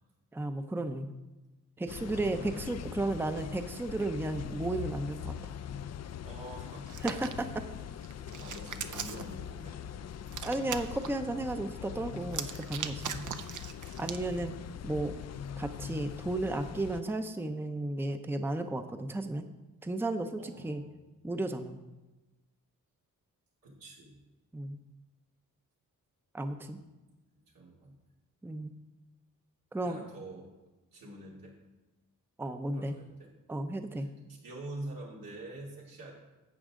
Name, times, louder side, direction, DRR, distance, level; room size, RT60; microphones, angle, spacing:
voice 1, 0.3-1.1 1.8-5.5 7.0-7.6 10.4-13.2 14.0-14.5 14.8-15.2 15.6-19.4 19.8-20.8 21.2-21.8 24.5-24.8 26.3-26.8 28.4-28.7 29.7-30.0 32.4-32.9 33.5-34.1, right 2 dB, 5° right, 7 dB, 0.6 m, -34 dB
voice 2, 1.8-2.7 3.0-3.4 6.2-6.9 7.6-7.8 8.1-9.8 20.4-20.9 23.6-24.2 26.5-26.9 27.5-28.0 29.8-30.5 30.9-31.6 32.7-33.3 33.9-36.1, right 1 dB, 90° right, -4 dB, 2.8 m, -47 dB
sound 1, 1.9-17.0, left 9 dB, 50° left, 0.4 m, -42 dB
Hands, 6.9-7.3 8.0-9.3 10.3-11.1 12.2-14.2, right 7 dB, 65° right, 0.7 m, -39 dB
11.5 x 7.9 x 3.7 m, 1.1 s
cardioid pair, 95°, 33 cm